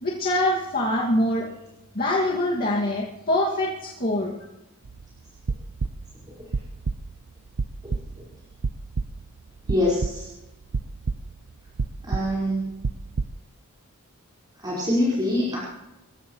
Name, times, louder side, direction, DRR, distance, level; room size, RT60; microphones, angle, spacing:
voice 1, 0.0-1.5 1.9-4.3, left 1 dB, 45° left, -4 dB, 2.2 m, -24 dB
sound 1, 4.8-5.1 5.4-6.2 6.5-7.2 7.6-8.2 8.6-9.4 9.7-10.3 10.7-11.5 11.8-13.3, right 4 dB, 70° right, 0.6 m, -29 dB
voice 2, 9.7-10.3 12.0-12.7 14.6-15.6, left 1 dB, 20° right, -7 dB, 4.8 m, -24 dB
27.0 x 16.0 x 3.2 m, 0.96 s
head